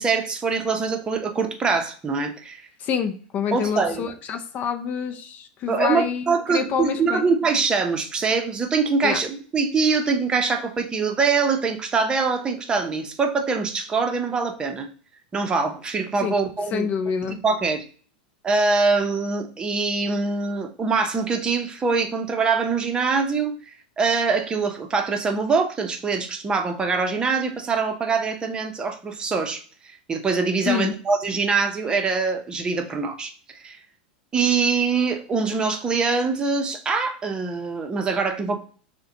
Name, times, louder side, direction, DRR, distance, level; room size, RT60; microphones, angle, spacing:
voice 1, 0.0-2.6 3.5-4.1 5.7-14.9 15.3-16.9 17.4-17.8 18.4-23.5 24.0-29.6 30.1-33.3 33.6-33.8 34.3-38.6, right 4 dB, 20° right, 5 dB, 0.7 m, -23 dB
voice 2, 2.8-7.2 9.0-9.2 16.2-16.4 16.7-17.4 30.7-30.9, left 7 dB, 35° left, 7 dB, 0.5 m, -27 dB
6.5 x 2.2 x 2.8 m, 0.42 s
hypercardioid pair, 125°, 5 cm